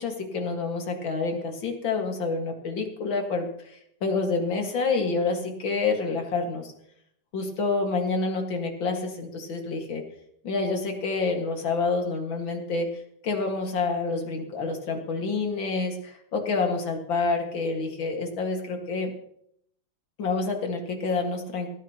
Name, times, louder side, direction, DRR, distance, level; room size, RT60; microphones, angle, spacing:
voice 1, 0.0-6.7 7.3-10.0 10.4-12.9 13.2-19.1 20.2-21.7, left 4 dB, 85° left, 2 dB, 2.8 m, -28 dB
19.0 x 14.0 x 3.0 m, 0.70 s
omnidirectional pair, 2.0 m